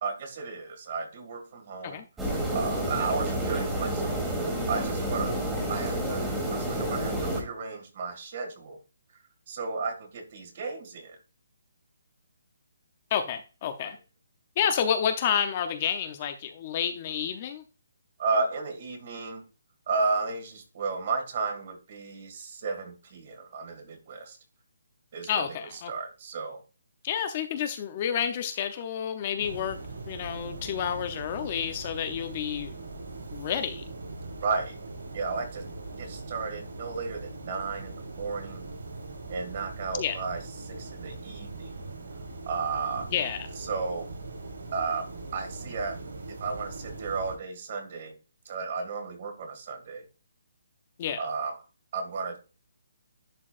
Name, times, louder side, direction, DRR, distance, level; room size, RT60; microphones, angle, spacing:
voice 1, 0.0-2.0 2.5-5.4 5.7-8.8 9.5-11.2 18.2-19.4 19.9-24.4 25.1-26.6 34.4-34.8 35.1-35.7 36.0-38.7 39.3-41.8 42.5-43.1 43.6-44.1 44.7-46.0 46.3-48.2 48.5-50.0 51.2-51.6 51.9-52.4, right 4 dB, 35° right, 1.9 m, -33 dB
sound 1, 2.2-7.4, right 1 dB, 5° right, 1.7 m, -29 dB
voice 2, 13.1-14.0 14.6-17.6 25.3-25.9 27.0-29.8 30.1-32.7 33.3-33.8 40.0-40.2 43.1-43.5 51.0-51.3, left 8 dB, 25° left, 0.6 m, -29 dB
sound 2, 29.4-47.4, right 2 dB, 75° right, 3.5 m, -41 dB
11.0 x 4.5 x 2.4 m
hypercardioid pair, 170°, 0 cm